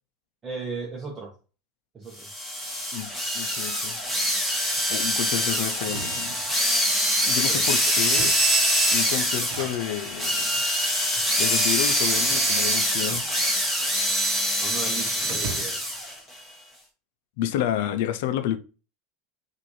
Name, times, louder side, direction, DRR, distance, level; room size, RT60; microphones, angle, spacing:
voice 1, 0.4-1.3 1.9-2.3 7.5-7.6 14.6-15.8, right 4 dB, 20° right, 0.9 m, -36 dB
sound 1, 2.2-16.1, equal, ahead, 1.1 m, -24 dB
voice 2, 2.9-4.0 4.8-6.4 7.3-8.4 8.9-10.6 11.4-13.3 17.4-18.6, left 11 dB, 70° left, 0.5 m, -30 dB
sound 2, 5.8-7.0 8.0-8.6 9.3-10.1 10.9-11.3 12.1-13.7 13.9-14.7 15.2-16.0, right 6 dB, 80° right, 1.0 m, -40 dB
6.1 x 2.6 x 3.1 m
supercardioid pair, 140°, 0 cm